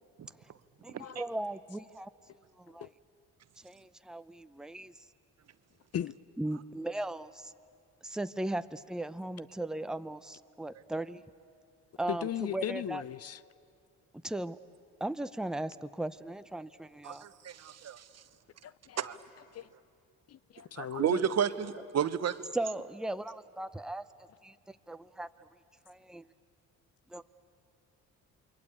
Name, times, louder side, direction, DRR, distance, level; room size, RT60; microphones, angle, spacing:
voice 1, 0.8-2.1 2.6-2.9 3.6-4.9 6.4-7.5 8.0-11.2 12.0-13.0 14.2-14.6 15.0-17.3 22.5-24.0 24.4-25.3 25.9-26.3 27.1-27.2, right 1 dB, ahead, 11 dB, 0.7 m, -37 dB
voice 2, 12.1-13.4 18.6-19.2 19.5-19.7 20.3-21.2, left 10 dB, 50° left, 18 dB, 0.6 m, -37 dB
voice 3, 17.0-18.0 19.0-19.2 20.8-22.4, right 8 dB, 50° right, 12 dB, 1.1 m, -31 dB
28.5 x 22.0 x 8.5 m, 2.3 s
supercardioid pair, 75°, 33 cm